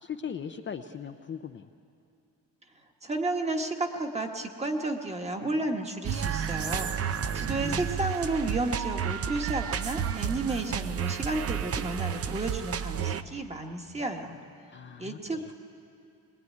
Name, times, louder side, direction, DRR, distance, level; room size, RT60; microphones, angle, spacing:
voice 1, 0.0-1.7 7.2-7.9 14.7-15.5, left 7 dB, 35° left, 6 dB, 0.6 m, -40 dB
voice 2, 3.0-14.4 15.0-15.5, right 2 dB, 20° right, 4 dB, 1.4 m, -32 dB
sound 1, 6.0-13.2, right 8 dB, 45° right, 0.7 m, -31 dB
21.0 x 21.0 x 9.5 m, 2.6 s
wide cardioid pair, 170°, 34 cm